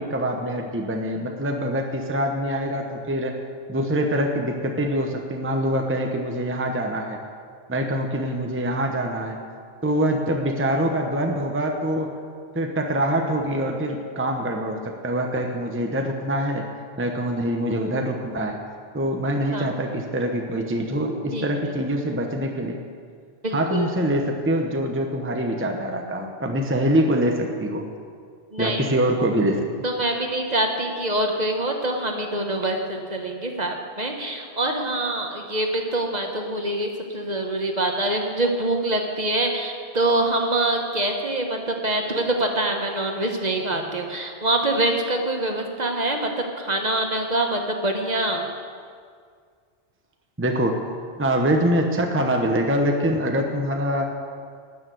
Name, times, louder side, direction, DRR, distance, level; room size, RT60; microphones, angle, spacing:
voice 1, 0.0-3.4 3.7-7.2 7.7-9.4 9.8-12.1 12.5-16.7 17.0-18.6 18.9-22.8 23.5-27.8 28.6-29.7 50.4-50.8 51.2-54.1, right 1 dB, 10° right, 3 dB, 0.9 m, -24 dB
voice 2, 21.3-21.7 23.4-23.9 28.5-28.9 29.8-46.3 46.6-48.4, right 1 dB, 40° right, 2 dB, 1.2 m, -25 dB
12.5 x 6.7 x 9.3 m, 2.1 s
omnidirectional pair, 1.2 m